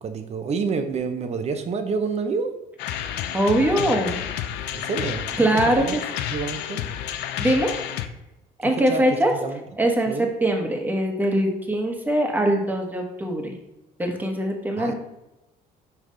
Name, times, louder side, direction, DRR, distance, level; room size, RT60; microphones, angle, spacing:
voice 1, 0.0-2.6 4.7-6.0 6.3-6.9 8.6-9.6 10.1-10.3 14.8-14.9, right 5 dB, 40° right, 7 dB, 0.7 m, -28 dB
sound 1, 2.8-8.1, left 10 dB, 85° left, 0.5 m, -30 dB
voice 2, 3.3-4.3 5.4-6.0 7.4-7.9 8.6-9.3 9.8-13.6 14.0-14.9, right 1 dB, 10° right, 2 dB, 1.2 m, -22 dB
5.6 x 4.8 x 3.8 m, 0.95 s
cardioid pair, 110°, 17 cm